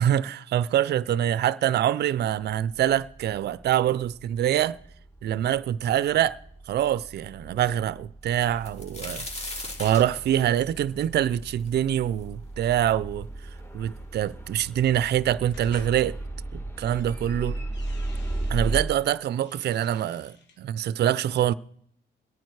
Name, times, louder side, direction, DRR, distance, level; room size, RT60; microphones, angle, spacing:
voice 1, 0.0-4.8 5.2-6.4 6.7-9.3 9.8-13.3 13.7-16.2 16.5-17.6 18.5-21.5, right 11 dB, 55° right, 0.5 m, -25 dB
sound 1, 2.7-18.8, right 2 dB, 10° left, 1.7 m, -37 dB
sound 2, 8.4-12.2 12.7-12.8 13.6-13.7 13.9-14.6 15.5-15.6 16.0-16.2, left 2 dB, 35° left, 3.2 m, -38 dB
sound 3, 15.5-15.9 16.6-18.8 19.3-20.6, left 4 dB, 65° left, 2.5 m, -52 dB
21.5 x 9.2 x 4.7 m
cardioid pair, 90°, 20 cm